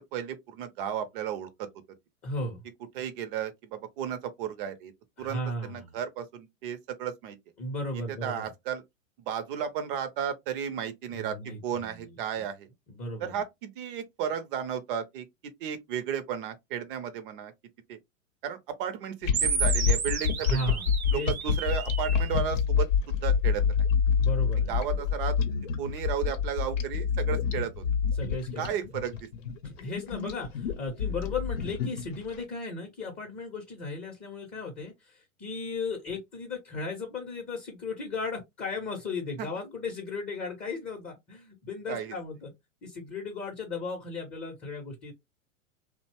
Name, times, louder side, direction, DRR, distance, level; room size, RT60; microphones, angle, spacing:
voice 1, 0.1-1.7 2.9-4.9 5.2-7.4 7.9-8.8 9.2-11.4 11.6-12.7 13.2-15.3 15.6-17.5 17.9-18.0 18.4-20.6 21.1-23.6 24.7-25.4 25.8-27.8 28.6-29.3 39.4-39.5 41.9-42.2, right 8 dB, 40° right, 0.6 m, -34 dB
voice 2, 2.2-2.6 5.2-6.0 7.6-8.5 11.1-12.2 12.9-13.4 20.4-21.6 24.2-24.8 28.1-28.7 29.6-42.5 42.8-45.1, left 2 dB, 20° left, 0.7 m, -36 dB
sound 1, 19.2-32.3, left 6 dB, 65° left, 0.7 m, -27 dB
sound 2, 19.3-22.3, right 6 dB, 85° right, 0.8 m, -32 dB
2.7 x 2.1 x 2.9 m
hypercardioid pair, 105°, 42 cm